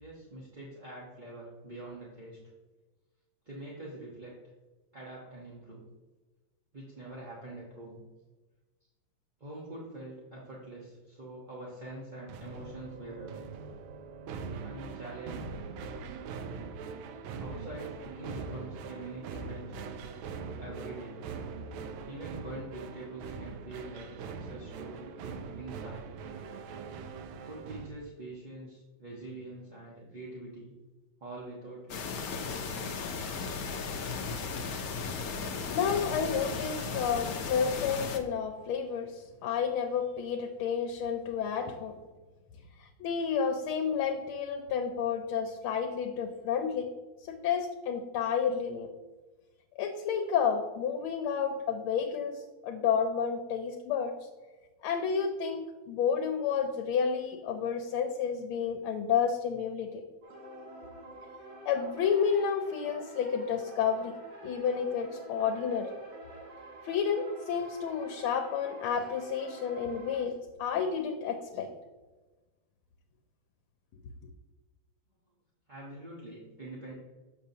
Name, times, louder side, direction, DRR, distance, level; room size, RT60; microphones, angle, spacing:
voice 1, 0.0-2.4 3.5-4.3 4.9-5.8 6.7-8.0 9.4-13.4 14.6-15.7 17.4-19.9 20.6-21.3 22.1-26.1 27.4-30.7 31.2-32.4 75.7-76.9, right 2 dB, 30° right, -5 dB, 0.9 m, -44 dB
sound 1, 12.3-27.9, right 5 dB, 75° right, 1.3 m, -42 dB
sound 2, 31.9-38.2, left 5 dB, 65° left, 0.9 m, -36 dB
voice 2, 35.7-41.9 42.8-46.9 47.3-48.9 49.8-54.1 54.8-60.0 61.6-64.2 64.4-65.9 66.8-71.7, left 7 dB, 85° left, 5 dB, 1.5 m, -30 dB
sound 3, 60.2-70.2, right 1 dB, 50° right, 1.8 m, -48 dB
7.2 x 6.6 x 2.8 m, 1.2 s
omnidirectional pair, 2.3 m